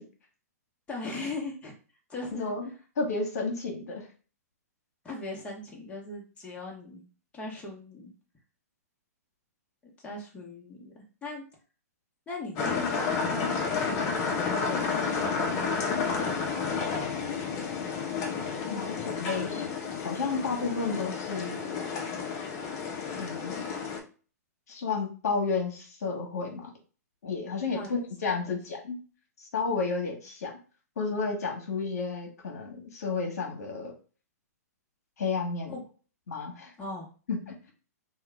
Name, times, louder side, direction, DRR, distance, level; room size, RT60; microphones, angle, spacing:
voice 1, 0.9-1.7 2.1-2.5 5.0-7.0 7.3-8.1 10.0-11.4 12.3-15.4 19.5-19.6 27.7-27.9 28.4-28.6 35.7-35.8 36.8-37.1, left 3 dB, 15° left, -2 dB, 1.0 m, -39 dB
voice 2, 3.0-4.1 18.7-21.8 23.2-23.6 24.7-26.7 27.2-29.0 29.4-30.5 31.0-33.9 35.2-35.8 36.3-36.7 37.3-37.7, left 4 dB, 70° left, 1 dB, 1.0 m, -32 dB
sound 1, 12.6-24.0, left 5 dB, 35° left, 0.7 m, -31 dB
2.8 x 2.3 x 3.4 m, 0.37 s
hypercardioid pair, 120°, 9 cm